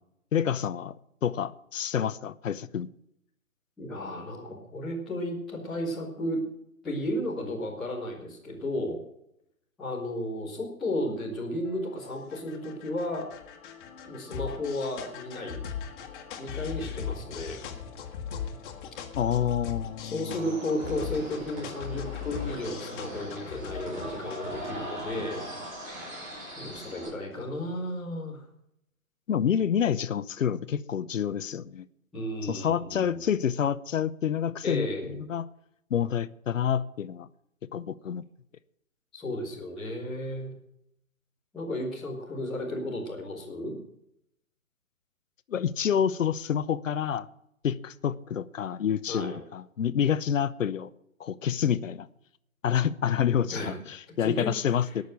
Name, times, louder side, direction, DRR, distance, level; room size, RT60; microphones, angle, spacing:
voice 1, 0.3-0.9 1.2-2.9 19.2-20.5 29.3-31.8 32.4-35.5 35.9-37.3 37.7-38.2 45.5-47.3 47.6-50.9 51.2-52.1 52.6-55.0, left 8 dB, 65° left, 16 dB, 0.8 m, -28 dB
voice 2, 3.8-6.4 6.8-9.0 9.8-13.3 14.1-15.6 16.4-17.6 20.0-25.4 26.0-26.1 26.6-28.4 32.1-33.3 34.6-35.2 39.1-40.5 41.5-43.8 49.1-49.4 53.5-53.8 54.2-54.5, left 1 dB, ahead, -13 dB, 0.4 m, -33 dB
sound 1, 11.6-27.2, left 8 dB, 35° left, 1.9 m, -40 dB
sound 2, 20.3-27.1, right 1 dB, 20° right, 6.4 m, -40 dB
19.5 x 6.7 x 6.4 m, 0.77 s
figure-of-eight pair, 130°, 42 cm